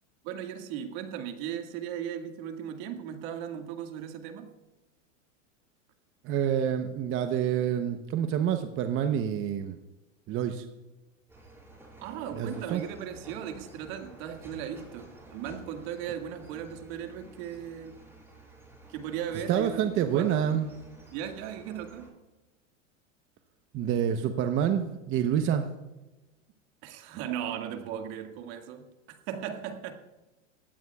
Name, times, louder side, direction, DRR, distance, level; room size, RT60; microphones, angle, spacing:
voice 1, 0.2-4.5 12.0-18.0 18.9-20.6 21.1-22.1 26.8-29.9, right 9 dB, 55° right, 5 dB, 2.0 m, -37 dB
voice 2, 6.2-9.8 10.3-10.6 12.4-12.8 19.5-20.7 23.7-25.7, right 9 dB, 30° right, 7 dB, 0.8 m, -27 dB
sound 1, 11.3-22.1, right 2 dB, 5° right, 4.9 m, -52 dB
20.0 x 16.0 x 2.3 m, 1.1 s
hypercardioid pair, 115°, 39 cm